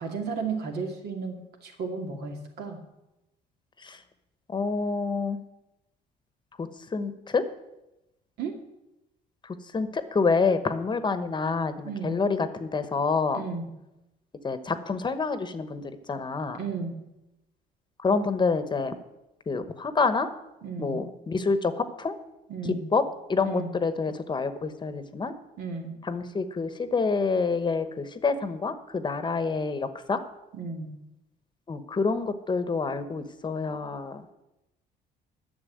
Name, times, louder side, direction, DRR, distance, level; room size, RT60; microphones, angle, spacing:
voice 1, 0.0-2.8 8.4-8.5 11.8-12.2 13.3-13.7 16.6-16.9 20.6-21.0 22.5-22.9 23.4-23.7 25.6-26.0 30.5-30.9, right 4 dB, 75° right, 3 dB, 2.4 m, -34 dB
voice 2, 4.5-5.4 6.6-7.4 9.7-13.4 14.4-15.8 16.1-16.6 18.0-18.9 19.5-20.3 20.8-22.2 22.6-23.0 23.3-25.3 26.0-30.2 31.7-34.2, left 4 dB, 25° left, 11 dB, 1.0 m, -27 dB
10.5 x 7.0 x 9.3 m, 0.95 s
cardioid pair, 110°, 17 cm